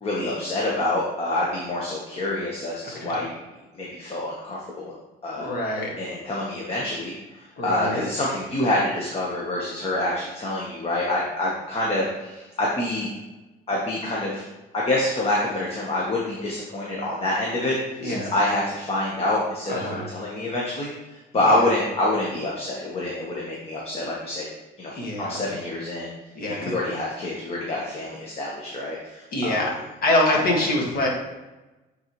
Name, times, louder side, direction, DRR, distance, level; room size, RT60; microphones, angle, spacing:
voice 1, 0.0-3.4 3.7-4.9 5.2-5.5 6.0-7.1 7.6-13.1 13.7-14.4 14.7-24.4 24.8-26.1 26.4-29.7, left 1 dB, 35° left, -4 dB, 1.2 m, -26 dB
voice 2, 5.4-5.9 7.6-8.0 18.0-18.3 19.7-20.1 21.3-21.7 24.9-25.5 26.4-26.7 29.3-29.7 30.0-31.1, left 1 dB, 60° left, -1 dB, 1.9 m, -25 dB
8.6 x 4.1 x 3.1 m, 1.1 s
cardioid pair, 110°, 17 cm